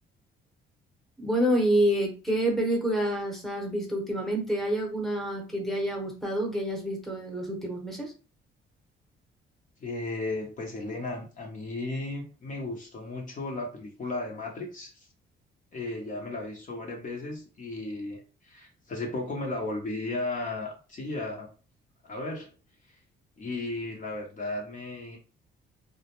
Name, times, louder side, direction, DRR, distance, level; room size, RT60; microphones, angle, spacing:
voice 1, 1.2-8.1, right 1 dB, ahead, 0.8 m, -28 dB
voice 2, 9.8-15.1 15.7-21.5 22.0-22.5 23.4-25.2, left 2 dB, 40° left, 0.7 m, -35 dB
2.2 x 2.1 x 2.9 m
cardioid pair, 90°, 20 cm